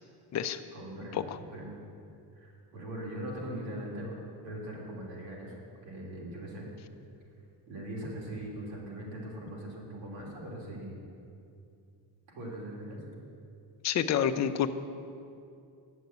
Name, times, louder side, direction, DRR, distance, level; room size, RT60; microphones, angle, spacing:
voice 1, 0.7-1.8 2.3-4.1 4.4-5.6 5.8-6.7 7.7-11.0 12.4-13.0, right 1 dB, 85° right, -3 dB, 3.5 m, -40 dB
voice 2, 13.8-14.7, left 9 dB, 40° left, 9 dB, 0.5 m, -28 dB
10.5 x 7.8 x 8.1 m, 2.5 s
cardioid pair, 160°, 44 cm